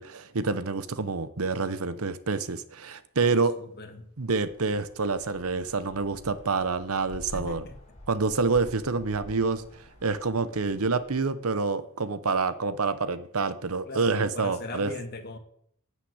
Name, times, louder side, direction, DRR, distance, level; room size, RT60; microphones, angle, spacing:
voice 1, 0.0-3.5 4.2-7.6 8.1-9.6 10.0-14.9, right 4 dB, 80° right, 14 dB, 0.9 m, -27 dB
voice 2, 3.2-4.1 7.3-7.8 13.9-15.4, left 2 dB, 50° left, 6 dB, 1.9 m, -40 dB
sound 1, 4.4-11.2, left 1 dB, 30° left, 4.7 m, -48 dB
9.8 x 9.1 x 8.0 m, 0.66 s
head